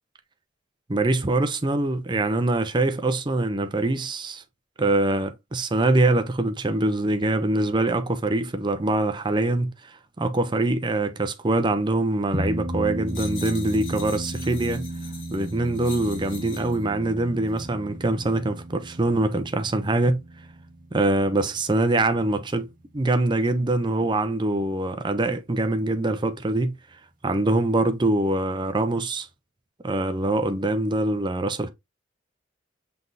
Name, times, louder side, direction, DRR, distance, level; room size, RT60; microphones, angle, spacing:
voice 1, 0.9-4.4 4.8-9.7 10.2-14.9 15.3-20.2 20.9-22.7 22.9-26.8 27.2-29.3 29.8-31.7, right 2 dB, 25° right, 0.5 m, -24 dB
sound 1, 12.3-23.0, right 1 dB, 40° right, 1.0 m, -35 dB
sound 2, 13.1-16.8 17.5-17.7, left 5 dB, 70° left, 2.3 m, -42 dB
6.0 x 3.5 x 2.5 m
head